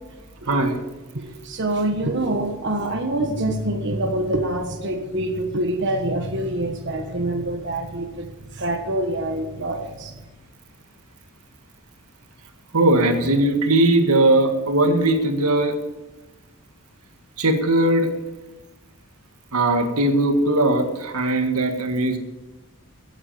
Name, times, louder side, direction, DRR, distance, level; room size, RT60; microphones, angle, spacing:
voice 1, 0.5-0.8 12.7-15.7 17.4-18.1 19.5-22.2, right 2 dB, 85° right, 5 dB, 1.9 m, -19 dB
voice 2, 1.1-8.3 8.6-10.1, right 1 dB, 55° right, 3 dB, 1.4 m, -25 dB
16.5 x 8.7 x 7.0 m, 1.1 s
head